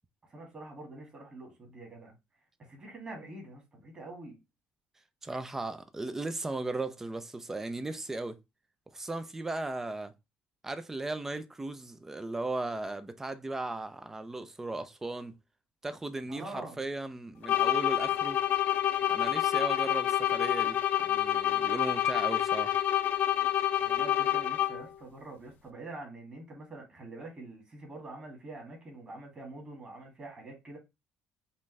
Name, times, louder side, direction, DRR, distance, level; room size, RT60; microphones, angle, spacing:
voice 1, 0.3-2.1 2.6-4.4 16.3-16.8 23.8-30.8, right 2 dB, 30° right, 2.1 m, -45 dB
voice 2, 5.2-8.4 8.9-10.1 10.6-15.4 15.8-18.4 19.1-20.8 21.0-22.8, right 2 dB, 10° right, 0.4 m, -37 dB
sound 1, 17.4-25.0, left 12 dB, 55° left, 0.6 m, -28 dB
5.3 x 2.6 x 3.2 m
cardioid pair, 135°, 4 cm